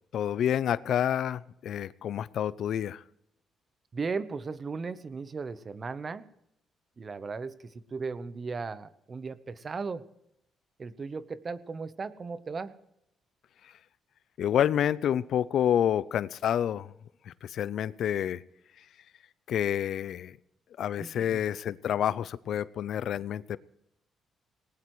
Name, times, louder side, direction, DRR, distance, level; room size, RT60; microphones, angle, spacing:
voice 1, 0.1-3.0 14.4-16.9 17.3-18.4 19.5-20.4 20.8-23.6, left 10 dB, 70° left, 19 dB, 0.5 m, -28 dB
voice 2, 3.9-6.3 7.0-10.0 10.8-12.8 21.0-21.4, right 4 dB, 35° right, 15 dB, 0.9 m, -36 dB
19.0 x 18.5 x 3.1 m, 0.79 s
cardioid pair, 90°, 0 cm